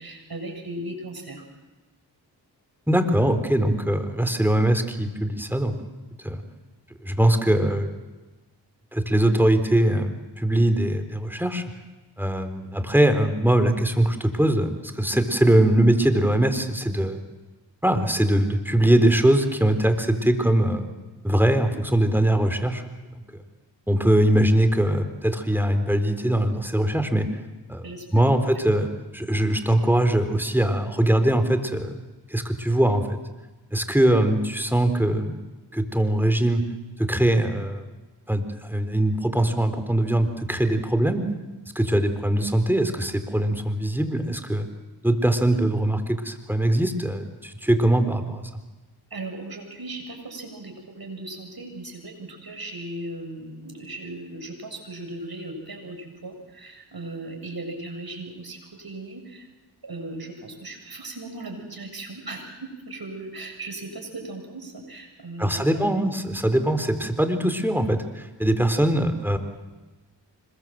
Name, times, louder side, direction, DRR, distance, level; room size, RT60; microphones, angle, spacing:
voice 1, 0.0-1.4 27.8-28.4 49.1-59.5 59.8-66.1, right 2 dB, 55° right, 4 dB, 7.1 m, -37 dB
voice 2, 2.9-5.7 6.2-6.4 7.0-7.9 8.9-11.6 12.2-17.2 17.8-20.9 21.2-22.8 23.3-23.4 23.9-27.3 27.7-27.9 28.1-32.0 32.3-33.2 33.7-35.4 35.7-36.6 37.0-37.8 38.3-41.2 41.8-44.7 45.0-48.4 65.4-69.4, right 1 dB, 5° right, 8 dB, 4.0 m, -22 dB
26.0 x 22.0 x 7.8 m, 1.2 s
cardioid pair, 40°, 44 cm